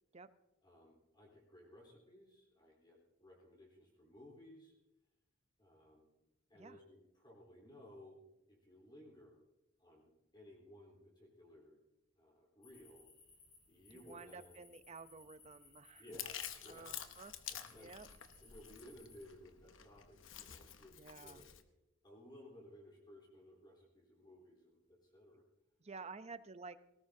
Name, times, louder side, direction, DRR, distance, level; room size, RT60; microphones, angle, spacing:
voice 1, 0.6-4.7 5.6-6.1 6.5-9.4 9.8-11.8 12.2-13.1 13.7-14.6 16.0-16.3 16.6-17.0 17.5-17.9 18.4-21.6 22.0-25.5, left 1 dB, 25° left, -2 dB, 3.8 m, -59 dB
sound 1, 12.6-19.2, left 4 dB, 45° left, 5.6 m, -64 dB
voice 2, 13.9-16.1 16.7-17.3 17.7-18.1 20.9-21.5 25.8-26.8, right 4 dB, 35° right, 12 dB, 0.6 m, -52 dB
Chewing mastication, 16.1-21.6, left 10 dB, 80° left, 1.0 m, -49 dB
19.0 x 18.0 x 2.7 m, 0.93 s
head